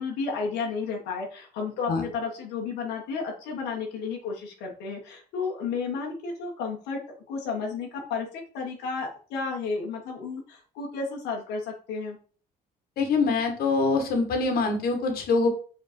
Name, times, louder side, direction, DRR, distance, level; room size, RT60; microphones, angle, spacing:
voice 1, 0.0-7.0 7.3-8.3 8.5-12.2, left 5 dB, 90° left, 0 dB, 1.5 m, -32 dB
voice 2, 13.0-15.5, left 3 dB, 65° left, 4 dB, 1.8 m, -24 dB
5.4 x 4.3 x 4.4 m, 0.40 s
cardioid pair, 110°, 17 cm